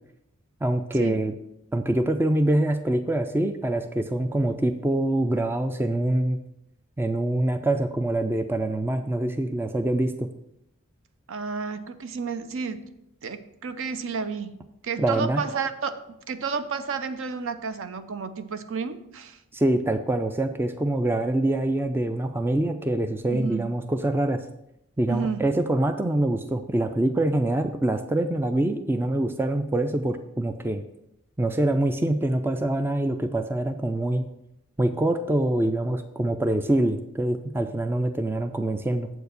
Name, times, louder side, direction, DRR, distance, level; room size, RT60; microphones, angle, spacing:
voice 1, 0.6-1.3 1.7-6.4 7.0-10.3 15.0-15.4 19.5-24.4 25.0-30.8 31.4-34.3 34.8-39.1, right 1 dB, 10° right, 8 dB, 0.3 m, -25 dB
voice 2, 11.3-12.9 13.2-14.6 14.8-19.4 23.3-23.7 25.1-25.5, right 5 dB, 60° right, 11 dB, 0.6 m, -31 dB
7.5 x 4.6 x 6.7 m, 0.83 s
head